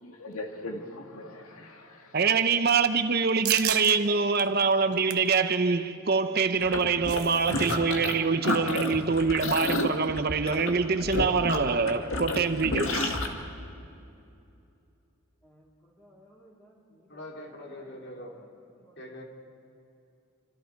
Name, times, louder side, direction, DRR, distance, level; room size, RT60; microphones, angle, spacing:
voice 1, 0.0-2.2, left 1 dB, 90° left, 2.0 m, -40 dB
voice 2, 2.1-13.2, right 5 dB, 45° right, 0.8 m, -25 dB
sound 1, 3.4-3.9 4.4-4.5 4.9-5.3 6.6-7.8 8.0-8.2 8.5-8.8, right 12 dB, 85° right, 1.0 m, -33 dB
sound 2, 6.6-8.2 8.4-13.3, left 2 dB, 70° left, 1.9 m, -30 dB
voice 3, 15.4-18.0 18.3-18.5 18.7-19.0, equal, 15° left, 4.0 m, -59 dB
voice 4, 17.1-18.4 19.0-19.2, left 1 dB, 50° left, 3.0 m, -42 dB
28.0 x 25.5 x 4.6 m
head